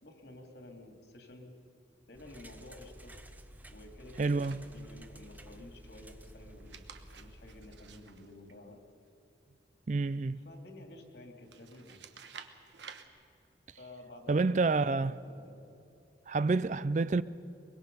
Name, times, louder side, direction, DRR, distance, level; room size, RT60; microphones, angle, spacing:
voice 1, 0.0-1.5 2.1-3.2 3.7-6.8 7.1-8.8 10.4-12.0 13.8-15.6 16.4-16.6, left 1 dB, 65° left, 2.8 m, -52 dB
sound 1, 2.1-8.0, right 1 dB, 10° right, 0.7 m, -52 dB
voice 2, 4.2-4.6 9.9-10.4 14.3-15.1 16.3-17.2, right 3 dB, 40° right, 0.4 m, -28 dB
sound 2, 4.4-5.1 6.5-9.1 11.5-13.0, right 6 dB, 75° right, 1.2 m, -52 dB
24.0 x 22.0 x 5.5 m
head